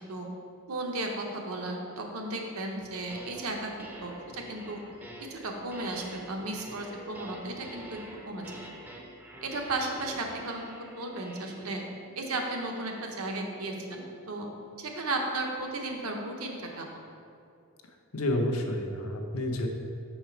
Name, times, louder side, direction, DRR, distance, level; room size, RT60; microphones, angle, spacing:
voice 1, 0.7-3.7 4.0-4.8 5.3-8.0 8.2-8.4 9.4-11.8 12.2-14.5 14.8-17.0, right 2 dB, 80° right, 1 dB, 0.8 m, -35 dB
sound 1, 2.8-3.5 3.8-14.2, right 1 dB, 10° right, 0.4 m, -47 dB
voice 2, 18.1-19.7, left 1 dB, 90° left, 3 dB, 0.7 m, -29 dB
5.7 x 4.4 x 4.5 m, 2.5 s
head